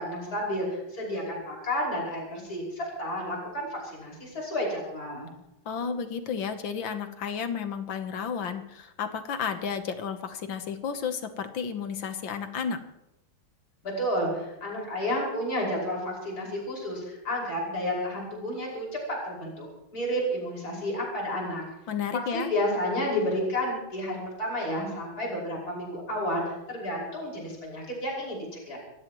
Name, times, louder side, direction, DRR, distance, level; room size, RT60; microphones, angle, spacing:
voice 1, 0.0-5.3 13.8-19.7 19.9-21.6 22.3-28.8, equal, 45° left, -3 dB, 6.0 m, -31 dB
voice 2, 5.7-12.8 21.9-22.5, left 6 dB, 65° left, 8 dB, 1.8 m, -32 dB
26.5 x 16.0 x 3.1 m, 0.88 s
omnidirectional pair, 2.3 m